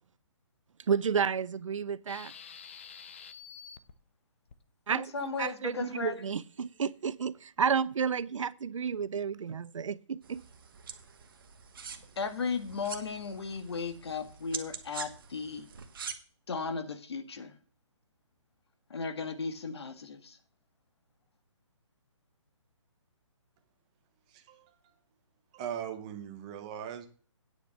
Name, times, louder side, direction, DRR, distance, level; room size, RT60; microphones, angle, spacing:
voice 1, 0.9-2.3 4.9-10.4, right 6 dB, 80° right, 0.6 m, -31 dB
sound 1, 2.1-3.9 4.5-4.6, left 7 dB, 25° left, 0.5 m, -48 dB
voice 2, 4.9-6.1 12.2-15.7 16.5-17.5 18.9-20.4, left 5 dB, 55° left, 1.6 m, -36 dB
sound 2, 10.2-16.1, right 6 dB, 45° right, 1.2 m, -45 dB
voice 3, 24.3-25.0 25.5-27.1, right 9 dB, 15° right, 0.7 m, -40 dB
9.4 x 5.0 x 7.2 m
hypercardioid pair, 175°, 16 cm